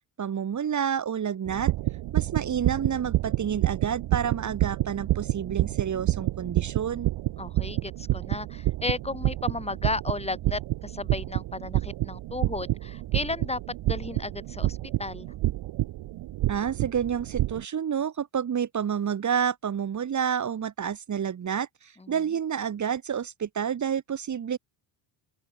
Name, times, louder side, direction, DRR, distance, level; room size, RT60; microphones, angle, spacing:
voice 1, 0.2-1.7 2.1-7.1 16.5-24.6, right 8 dB, 35° right, 3.9 m, -29 dB
sound 1, 1.5-17.6, right 15 dB, 65° right, 2.8 m, -29 dB
voice 2, 7.4-15.3 22.0-22.2, left 2 dB, 15° left, 7.7 m, -34 dB
open air
cardioid pair, 140°, 48 cm